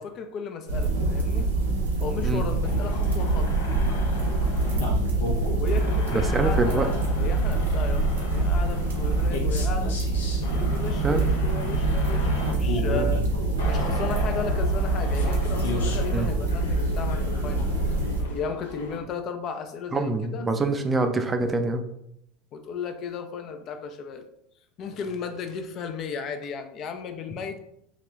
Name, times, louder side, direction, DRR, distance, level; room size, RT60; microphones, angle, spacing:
voice 1, 0.0-1.5 2.0-4.1 4.4-4.5 5.6-10.0 10.5-13.2 13.7-18.0 18.2-20.5 22.5-24.2 24.8-27.6, left 5 dB, 45° left, 7 dB, 0.4 m, -35 dB
sound 1, 0.7-18.2, right 2 dB, 90° right, 0.7 m, -25 dB
sound 2, 2.6-19.0, left 1 dB, 80° left, 0.7 m, -34 dB
voice 2, 6.1-6.9 11.0-11.2 16.1-16.3 19.9-21.8, right 3 dB, 20° right, 6 dB, 0.4 m, -25 dB
3.8 x 2.2 x 3.0 m, 0.76 s
hypercardioid pair, 90°, 0 cm